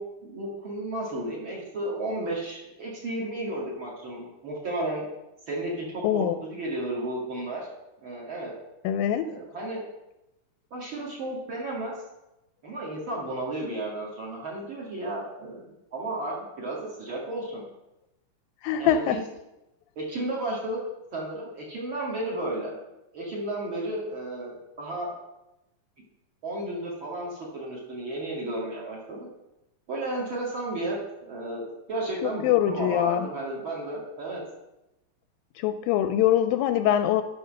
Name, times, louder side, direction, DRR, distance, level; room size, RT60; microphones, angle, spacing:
voice 1, 0.0-5.1 5.5-7.7 8.0-8.5 9.3-9.9 10.7-11.9 12.6-17.7 18.8-19.2 20.0-20.8 21.1-22.7 23.1-25.1 26.4-29.3 29.9-34.4, right 1 dB, 40° right, -4 dB, 2.3 m, -33 dB
voice 2, 6.0-6.4 8.8-9.4 18.6-19.2 32.2-33.3 35.6-37.2, left 11 dB, 80° left, 9 dB, 2.1 m, -23 dB
10.5 x 5.4 x 6.5 m, 0.92 s
omnidirectional pair, 4.3 m